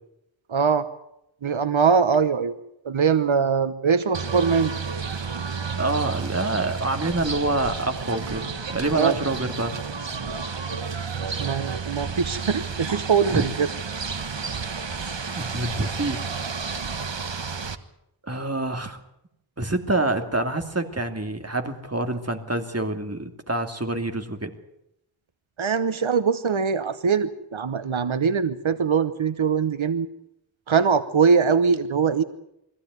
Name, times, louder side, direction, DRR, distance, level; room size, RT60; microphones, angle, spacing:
voice 1, 0.5-0.9 1.4-2.5 2.8-4.8 8.9-9.1 11.4-13.7 25.6-30.1 30.7-32.2, right 6 dB, 85° right, 13 dB, 1.0 m, -22 dB
sound 1, 4.1-17.8, right 5 dB, 70° right, 1.4 m, -31 dB
voice 2, 5.8-9.7 13.3-13.5 15.4-16.2 18.3-19.0 19.6-24.5, right 2 dB, 30° right, 6 dB, 2.7 m, -26 dB
23.0 x 15.5 x 9.5 m, 0.82 s
wide cardioid pair, 50°, 46 cm